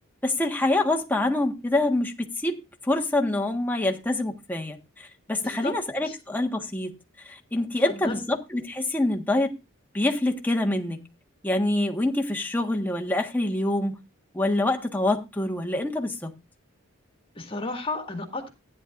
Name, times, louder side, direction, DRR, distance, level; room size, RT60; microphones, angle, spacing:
voice 1, 0.2-2.1 2.4-2.6 2.9-7.0 7.3-9.5 9.9-11.0 11.4-14.0 14.3-16.3, left 1 dB, 10° left, 1.5 m, -26 dB
voice 2, 5.4-5.7 6.0-6.2 7.8-8.2 17.4-18.5, left 3 dB, 25° left, 1.9 m, -33 dB
15.0 x 10.0 x 2.6 m
head